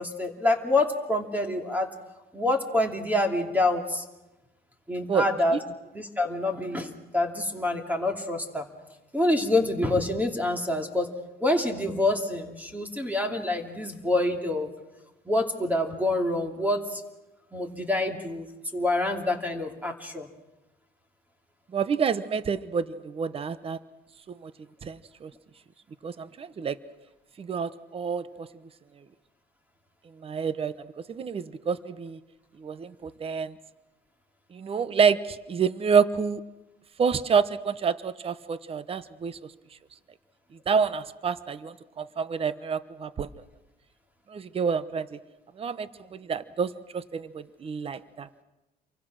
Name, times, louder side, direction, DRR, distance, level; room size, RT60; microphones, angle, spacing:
voice 1, 0.0-1.9 2.3-4.0 4.9-5.6 5.9-8.7 9.1-11.1 11.4-14.7 15.3-17.0 17.5-18.5 18.7-20.3, left 2 dB, 10° right, 4 dB, 2.7 m, -26 dB
voice 2, 21.7-23.8 24.3-24.5 24.8-25.3 26.0-26.8 27.4-28.5 30.2-30.7 31.1-32.2 32.6-33.5 34.5-36.4 37.0-39.4 40.7-43.3 44.3-45.2 45.6-48.3, right 6 dB, 35° right, 15 dB, 1.0 m, -28 dB
28.5 x 24.0 x 6.4 m, 1.0 s
cardioid pair, 110°, 17 cm